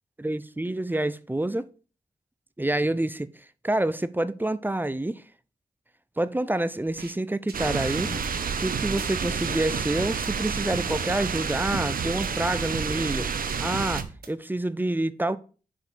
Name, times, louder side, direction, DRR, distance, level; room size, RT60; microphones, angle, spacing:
voice 1, 0.2-1.7 2.6-3.3 3.6-5.2 6.2-15.4, right 1 dB, 10° right, 0.6 m, -28 dB
sound 1, 7.0-7.1 7.5-9.1 9.7-10.9 11.2-11.3 11.7-13.1 13.5-14.3, right 6 dB, 90° right, 1.0 m, -38 dB
sound 2, 7.5-14.0, right 6 dB, 65° right, 0.7 m, -30 dB
sound 3, 8.0-13.7, left 2 dB, 60° left, 2.7 m, -43 dB
5.3 x 5.2 x 5.8 m
cardioid pair, 55°, 16 cm